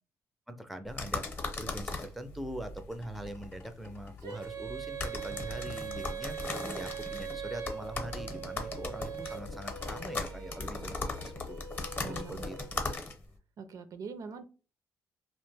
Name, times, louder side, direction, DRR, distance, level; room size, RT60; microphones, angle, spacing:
voice 1, 0.5-11.6 12.0-12.6, right 1 dB, ahead, 8 dB, 0.4 m, -43 dB
sound 1, 0.8-12.2, left 1 dB, 80° left, 0.6 m, -49 dB
sound 2, 0.9-13.4, left 3 dB, 30° left, 0.7 m, -39 dB
Female singing, 4.2-13.0, right 7 dB, 85° right, 0.7 m, -42 dB
voice 2, 12.0-12.4 13.6-14.4, right 5 dB, 60° right, 9 dB, 0.4 m, -43 dB
2.6 x 2.1 x 3.3 m, 0.35 s
cardioid pair, 100°, 7 cm